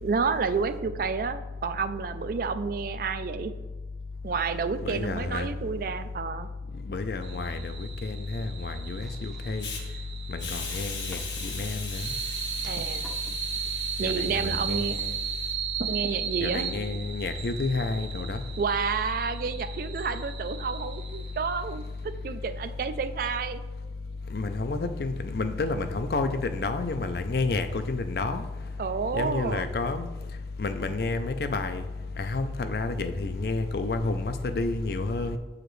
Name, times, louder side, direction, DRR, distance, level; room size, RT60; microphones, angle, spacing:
voice 1, 0.0-3.5 4.2-6.5 12.7-13.1 14.0-15.0 15.8-16.7 18.6-23.6 28.8-29.7, right 5 dB, 50° right, 0.3 m, -30 dB
voice 2, 4.8-5.5 6.8-9.7 10.3-12.1 14.0-15.2 16.4-18.4 24.3-28.5 29.1-30.1 30.6-31.8 32.2-35.4, left 3 dB, 60° left, 0.4 m, -30 dB
sound 1, 7.2-21.7, right 8 dB, 85° right, 0.8 m, -36 dB
sound 2, 9.0-9.7 10.7-11.7 12.6-13.5, equal, 5° left, 0.5 m, -51 dB
Hiss, 9.6-9.8 10.4-15.5, left 5 dB, 90° left, 1.0 m, -40 dB
7.7 x 4.9 x 3.1 m
head